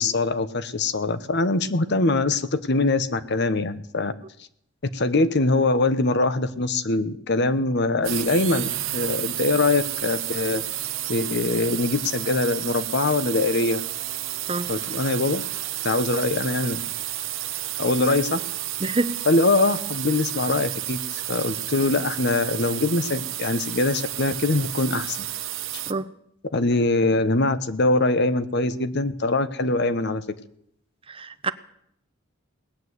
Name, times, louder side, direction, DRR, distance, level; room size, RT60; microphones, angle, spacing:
voice 1, 0.0-4.1 4.9-10.6 11.1-13.8 14.7-15.4 15.8-16.8 17.8-18.4 19.3-25.3 25.7-25.8 26.5-30.4, left 2 dB, 55° left, 0.9 m, -23 dB
sound 1, 8.0-25.9, right 14 dB, 70° right, 0.9 m, -31 dB
voice 2, 18.8-19.2 25.9-26.1 31.1-31.5, right 3 dB, 25° right, 0.8 m, -26 dB
19.0 x 9.3 x 8.1 m
head